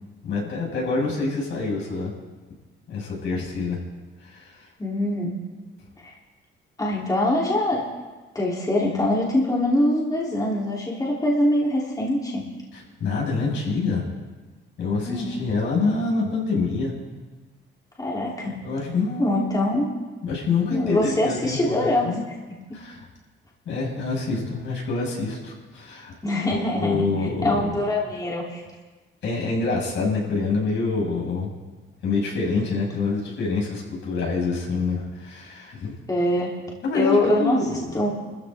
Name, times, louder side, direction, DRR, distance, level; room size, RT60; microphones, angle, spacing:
voice 1, 0.2-2.1 2.9-3.8 4.2-4.7 12.7-14.0 14.8-16.9 18.6-19.4 20.2-22.2 22.7-23.0 23.6-27.7 29.2-31.5 32.0-35.9 36.8-37.9, left 4 dB, 70° left, -3 dB, 6.9 m, -26 dB
voice 2, 4.8-5.3 6.0-6.1 6.8-7.8 8.3-12.5 14.8-15.4 18.0-18.6 19.2-20.0 20.7-22.2 22.5-22.8 26.2-27.1 27.4-28.6 36.1-36.5 36.9-38.1, left 1 dB, 20° left, -4 dB, 3.7 m, -23 dB
26.5 x 14.5 x 3.8 m, 1.3 s
cardioid pair, 90°, 20 cm